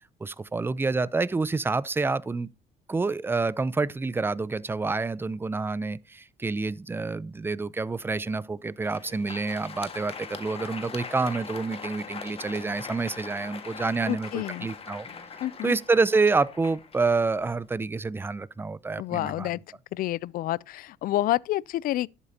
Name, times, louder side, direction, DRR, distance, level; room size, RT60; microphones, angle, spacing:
voice 1, 0.2-2.5 2.9-15.1 15.6-19.5, right 3 dB, 15° right, 0.5 m, -28 dB
Crowd, 8.7-17.7, left 5 dB, 35° left, 1.7 m, -41 dB
voice 2, 14.1-14.7 15.4-15.7 19.0-19.6 19.9-22.1, left 15 dB, 60° left, 0.4 m, -28 dB
11.0 x 8.3 x 2.8 m
cardioid pair, 110°, 17 cm